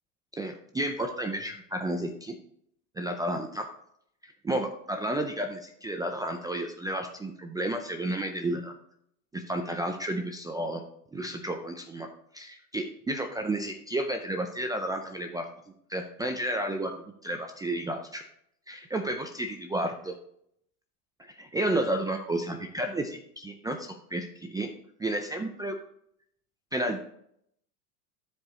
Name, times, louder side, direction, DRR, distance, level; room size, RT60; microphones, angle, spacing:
voice 1, 0.3-2.3 3.0-3.7 4.4-8.7 9.3-10.8 11.1-12.1 12.3-15.5 15.9-18.2 18.7-20.1 21.4-24.7 25.0-25.8 26.7-27.0, right 1 dB, 10° right, 5 dB, 0.4 m, -32 dB
13.0 x 4.8 x 3.1 m, 0.71 s
supercardioid pair, 115°, 48 cm